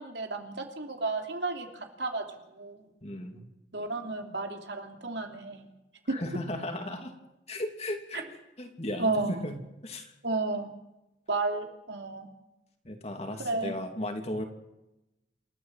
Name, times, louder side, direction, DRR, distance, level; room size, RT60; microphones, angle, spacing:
voice 1, 0.0-2.9 3.7-5.7 6.1-6.2 9.0-9.4 10.2-10.7 11.3-12.3 13.4-13.7, right 3 dB, 80° right, 4 dB, 3.2 m, -32 dB
voice 2, 3.0-3.5 6.1-7.1 7.5-8.2 8.6-9.6 9.8-10.1 12.8-14.4, left 1 dB, 35° left, 4 dB, 3.1 m, -35 dB
28.0 x 14.0 x 7.8 m, 0.93 s
head